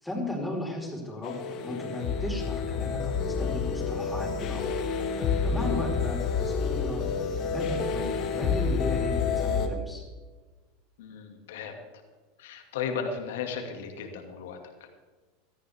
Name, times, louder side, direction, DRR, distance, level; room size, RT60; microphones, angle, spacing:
voice 1, 0.0-1.4 1.6-4.6 5.1-7.0 7.4-10.0, left 1 dB, 5° left, -2 dB, 4.6 m, -36 dB
sound 1, 1.2-9.7, left 5 dB, 50° left, 1.7 m, -29 dB
voice 2, 11.0-11.8 12.4-14.6, left 6 dB, 80° left, 4 dB, 2.3 m, -35 dB
17.5 x 13.5 x 3.6 m, 1.3 s
hypercardioid pair, 110°, 0 cm